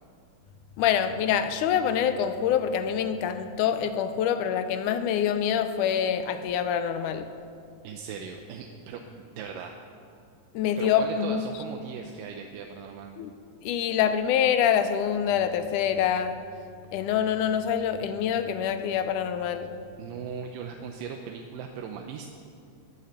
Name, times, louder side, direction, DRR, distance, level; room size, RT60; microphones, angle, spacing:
voice 1, 0.8-7.3 10.5-11.5 13.2-13.3 13.6-16.4 16.9-19.8, left 8 dB, 80° left, 2.1 m, -25 dB
voice 2, 7.8-9.7 10.8-13.1 20.0-22.3, right 6 dB, 85° right, 2.4 m, -38 dB
19.5 x 9.4 x 6.6 m
omnidirectional pair, 3.8 m